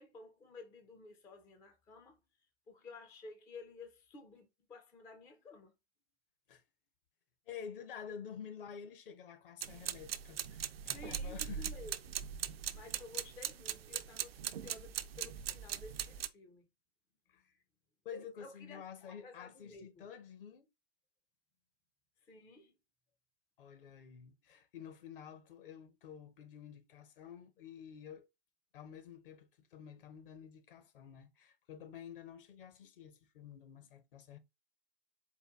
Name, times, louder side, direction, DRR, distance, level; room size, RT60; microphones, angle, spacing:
voice 1, 0.0-2.2 2.7-5.7 10.8-12.0 12.7-16.7 18.1-20.1 22.2-22.7, left 3 dB, 10° left, 0.3 m, -53 dB
voice 2, 7.5-11.7 17.3-17.6 18.0-20.7 23.6-28.3 28.7-34.4, left 7 dB, 55° left, 0.8 m, -50 dB
sound 1, 9.6-16.3, right 9 dB, 65° right, 0.5 m, -41 dB
4.5 x 2.2 x 3.3 m
figure-of-eight pair, 100°, 32 cm